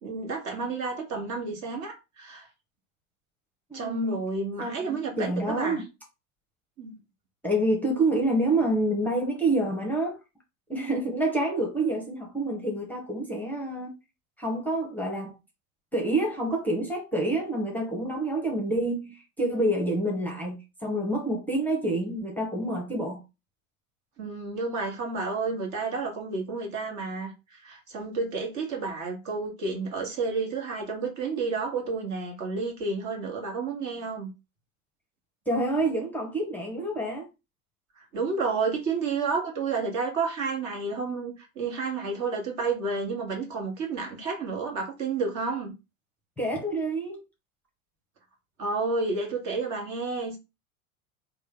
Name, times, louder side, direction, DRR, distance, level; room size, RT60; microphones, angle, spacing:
voice 1, 0.0-2.5 3.7-5.8 6.8-7.0 24.2-34.3 38.0-45.7 48.6-50.4, right 4 dB, 40° right, 1.4 m, -31 dB
voice 2, 3.7-4.2 4.6-5.9 7.4-10.2 10.7-13.9 14.4-15.3 15.9-23.2 35.5-37.3 46.4-47.2, right 1 dB, 5° left, 0.9 m, -27 dB
3.2 x 2.2 x 3.7 m
hypercardioid pair, 85°, 43 cm